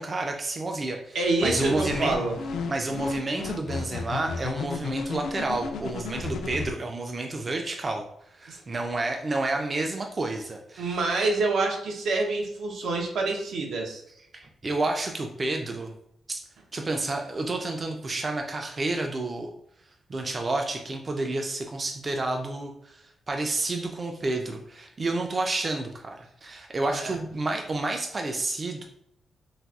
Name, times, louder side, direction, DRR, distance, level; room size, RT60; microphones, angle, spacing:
voice 1, 0.0-2.2 2.7-11.0 14.3-15.9 16.3-16.4 16.7-19.5 20.1-28.8, right 2 dB, 30° right, 3 dB, 0.3 m, -30 dB
voice 2, 1.1-2.4 8.5-8.6 10.8-14.0 26.9-27.1, right 3 dB, 80° right, 1 dB, 0.7 m, -27 dB
sound 1, 1.4-6.7, left 5 dB, 85° left, 0.4 m, -33 dB
4.0 x 2.3 x 2.3 m, 0.74 s
wide cardioid pair, 135°, 0 cm